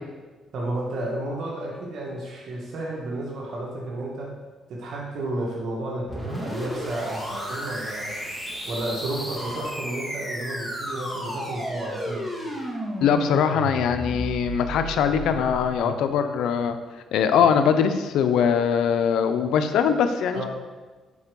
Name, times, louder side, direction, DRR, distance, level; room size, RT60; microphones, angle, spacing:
voice 1, 0.5-4.3 4.7-8.1 8.7-12.3 15.7-16.0 20.3-20.5, right 1 dB, 65° right, -2 dB, 1.8 m, -32 dB
sound 1, 6.1-15.7, equal, 5° right, 3.0 m, -33 dB
voice 2, 13.0-16.8 17.1-20.4, left 7 dB, 80° left, 8 dB, 0.7 m, -22 dB
8.5 x 4.6 x 7.0 m, 1.3 s
cardioid pair, 90°, 0 cm